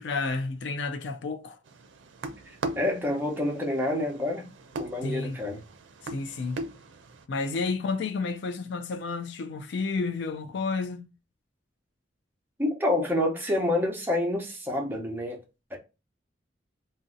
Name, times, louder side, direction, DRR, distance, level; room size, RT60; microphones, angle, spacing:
voice 1, 0.0-1.6 5.0-5.4 6.0-6.6 7.3-11.1, left 4 dB, 70° left, 0.4 m, -31 dB
sound 1, 1.7-7.2, right 2 dB, 80° right, 0.4 m, -40 dB
voice 2, 2.7-4.4 4.8-5.6 12.6-15.4 15.7-15.8, left 1 dB, 10° right, 0.7 m, -28 dB
2.6 x 2.1 x 3.6 m
head